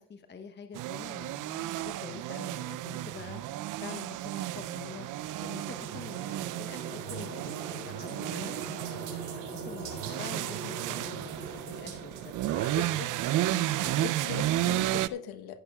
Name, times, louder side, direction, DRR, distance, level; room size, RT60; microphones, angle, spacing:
voice 1, 0.0-3.4 3.8-5.1 5.4-9.2 9.5-12.8 13.5-14.1, left 5 dB, 25° left, 7 dB, 1.0 m, -46 dB
sound 1, 0.7-15.1, right 14 dB, 45° right, 0.6 m, -33 dB
sound 2, 4.2-13.8, right 5 dB, 80° right, 4.9 m, -42 dB
voice 2, 12.7-13.1 13.9-15.6, left 9 dB, 60° left, 10 dB, 1.2 m, -40 dB
15.0 x 10.5 x 2.4 m, 0.64 s
hypercardioid pair, 80°, 43 cm